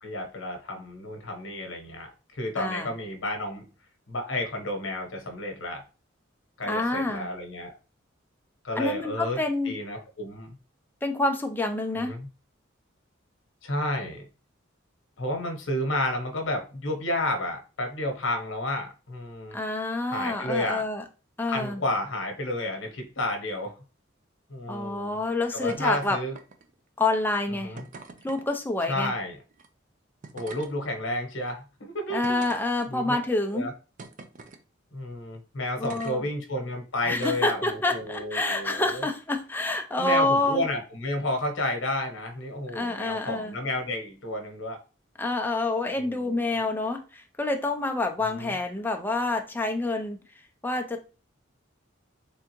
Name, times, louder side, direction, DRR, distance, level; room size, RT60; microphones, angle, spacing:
voice 1, 0.0-3.6 4.1-5.8 6.6-7.7 8.6-9.4 9.6-10.6 11.9-12.3 13.6-14.2 15.2-19.6 20.1-20.8 21.5-23.7 24.5-25.2 25.5-26.3 27.6-27.8 28.9-29.4 30.3-32.4 32.9-33.2 33.5-33.7 34.9-39.0 39.9-44.8 46.0-46.6 48.3-48.5, left 1 dB, 75° left, 4 dB, 1.0 m, -31 dB
voice 2, 2.6-2.9 6.6-7.3 8.8-9.8 11.0-12.2 19.5-21.0 21.4-21.8 24.7-26.2 27.0-27.7 28.2-29.1 32.1-33.7 35.8-36.3 37.1-40.6 42.7-43.6 45.2-50.2 50.6-51.0, left 2 dB, 10° left, 4 dB, 0.5 m, -27 dB
sound 1, 25.7-26.1 26.3-26.8 27.8-28.5 29.5-29.7 30.2-30.7 31.4-31.5 32.2-33.1 34.0-34.6 35.8-36.1 37.1-37.6 38.6-38.8, right 3 dB, 40° right, 0.4 m, -44 dB
3.6 x 3.4 x 3.0 m, 0.34 s
head